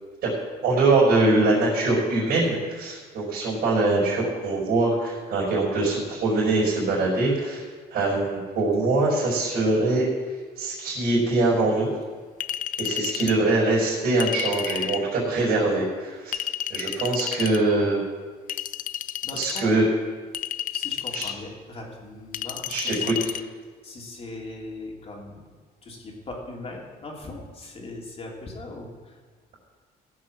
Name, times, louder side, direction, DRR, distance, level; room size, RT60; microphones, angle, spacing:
voice 1, 0.6-7.6 7.9-10.1 10.6-11.9 12.8-16.4 16.7-18.0 19.3-19.9 21.1-21.2 22.6-23.3, right 2 dB, 65° right, -6 dB, 5.1 m, -23 dB
Chink clink, 12.4-13.4 14.2-15.1 16.3-17.6 18.5-19.7 20.3-21.4 22.3-23.4, left 11 dB, 50° left, 0.5 m, -31 dB
voice 2, 19.2-19.8 20.7-23.3 23.8-25.5 25.8-29.2, left 2 dB, 35° left, -1 dB, 3.0 m, -39 dB
16.0 x 6.4 x 7.3 m, 1.5 s
cardioid pair, 110°, 17 cm